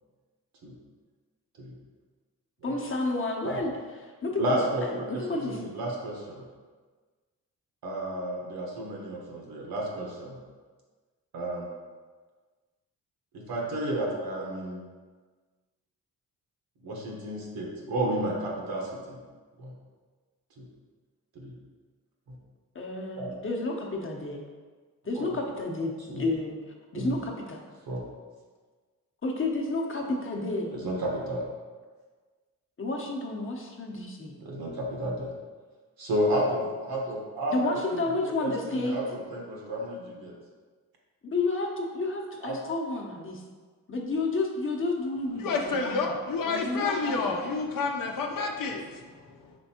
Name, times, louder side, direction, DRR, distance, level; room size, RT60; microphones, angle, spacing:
voice 1, 2.6-3.7 4.0-5.6 22.7-24.4 25.0-27.6 29.2-30.7 32.8-34.4 37.5-39.0 41.2-43.4 43.9-46.1 46.4-47.3, left 2 dB, 35° left, 0.9 m, -31 dB
voice 2, 4.4-6.4 7.8-10.4 11.3-11.7 13.3-14.8 16.8-19.2 19.6-19.7 20.6-20.7 21.3-21.5 22.3-22.4 23.2-23.3 25.1-25.3 26.1-26.2 26.9-27.1 27.9-28.0 30.7-31.4 34.4-35.3 36.0-38.5 38.8-40.3 42.4-42.6, right 1 dB, 80° right, 1.2 m, -32 dB
voice 3, 45.4-49.6, left 4 dB, 65° left, 0.7 m, -30 dB
5.2 x 3.4 x 2.8 m
cardioid pair, 65°, 36 cm